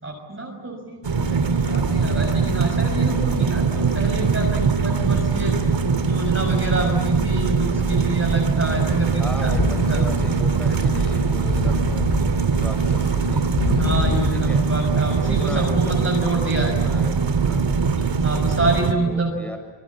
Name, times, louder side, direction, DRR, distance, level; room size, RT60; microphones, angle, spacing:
voice 1, 0.0-5.6 6.1-9.5 9.9-10.0 13.8-16.7 18.2-19.3, right 2 dB, 25° right, 0 dB, 5.9 m, -27 dB
sound 1, 1.0-18.9, right 5 dB, 60° right, 2.9 m, -21 dB
sound 2, 1.5-14.8, left 4 dB, 80° left, 2.9 m, -30 dB
voice 2, 9.2-13.5 14.3-14.6 15.1-17.6 19.0-19.6, equal, 5° left, 6 dB, 6.8 m, -37 dB
26.5 x 25.0 x 8.6 m, 1.2 s
wide cardioid pair, 110°, 50 cm